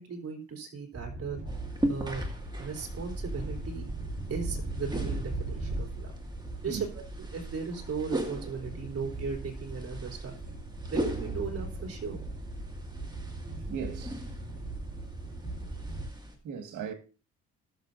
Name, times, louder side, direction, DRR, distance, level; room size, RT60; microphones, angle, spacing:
voice 1, 0.0-1.4 1.9-2.2 2.6-3.8 4.3-6.1 6.6-7.0 7.3-10.3 10.9-12.2 15.4-15.9, right 5 dB, 50° right, 3.5 m, -37 dB
sound 1, 0.9-16.0, right 2 dB, 30° right, 7.1 m, -39 dB
sound 2, 1.5-16.4, right 1 dB, 15° right, 2.1 m, -39 dB
voice 2, 13.7-14.2 16.4-16.9, right 7 dB, 80° right, 1.8 m, -37 dB
19.5 x 7.0 x 2.7 m
cardioid pair, 90°, 30 cm